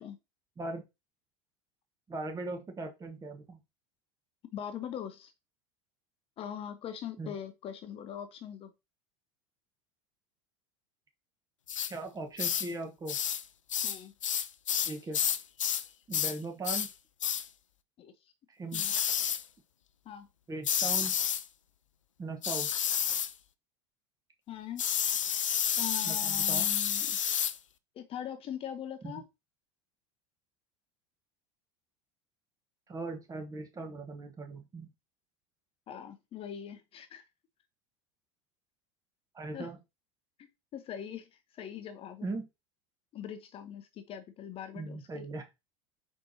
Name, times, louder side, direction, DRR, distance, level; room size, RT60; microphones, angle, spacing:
voice 1, 2.1-3.6 7.2-7.3 11.9-13.2 14.8-15.2 16.1-16.9 18.5-19.0 20.5-21.2 22.2-22.7 26.0-26.7 29.0-29.2 32.9-34.9 39.3-39.8 42.2-42.5 44.7-45.5, right 3 dB, 20° right, 4 dB, 1.1 m, -39 dB
voice 2, 4.5-5.3 6.4-8.7 13.8-14.1 18.0-18.3 18.7-18.9 20.1-20.3 24.5-24.9 25.8-27.2 27.9-29.3 35.9-37.2 39.5-39.7 40.4-42.3 43.1-45.2, left 9 dB, 35° left, 10 dB, 0.6 m, -42 dB
sound 1, 11.7-11.9 12.4-12.7 13.1-13.4 13.7-15.9 16.1-16.4 16.6-16.9 17.2-17.5 18.7-19.4 20.6-21.4 22.4-23.3 24.8-27.6, left 9 dB, 80° left, 0.4 m, -30 dB
4.5 x 4.3 x 2.8 m, 0.23 s
figure-of-eight pair, 80°, 16 cm